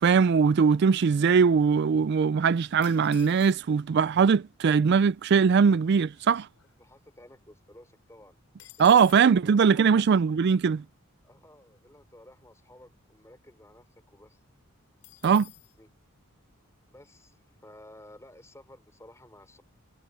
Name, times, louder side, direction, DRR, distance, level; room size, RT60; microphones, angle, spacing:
voice 1, 0.0-6.5 8.8-10.8 15.2-15.5, right 6 dB, 50° right, 0.3 m, -21 dB
sound 1, 2.8-3.9 4.7-4.8 5.0-5.3 5.8-7.2 7.6-7.7 8.0-9.4 15.0-15.8, left 15 dB, 85° left, 3.2 m, -51 dB
voice 2, 6.8-8.4 8.8-9.9 11.2-14.4 15.8-15.9 16.9-19.6, left 1 dB, 15° left, 5.2 m, -53 dB
head